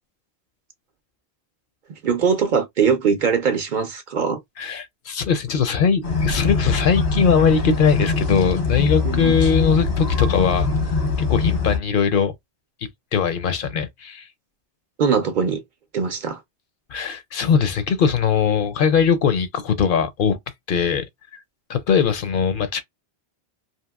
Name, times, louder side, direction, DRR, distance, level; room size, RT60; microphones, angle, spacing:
voice 1, 2.0-4.4 9.0-9.4 15.0-15.6 15.9-16.4, right 6 dB, 55° right, 0.6 m, -21 dB
voice 2, 4.6-10.7 11.3-12.3 13.1-14.3 16.9-20.4 20.7-21.1 21.7-22.8, left 6 dB, 65° left, 0.7 m, -20 dB
sound 1, 6.0-11.8, left 4 dB, 90° left, 1.2 m, -22 dB
2.8 x 2.6 x 2.2 m
omnidirectional pair, 1.1 m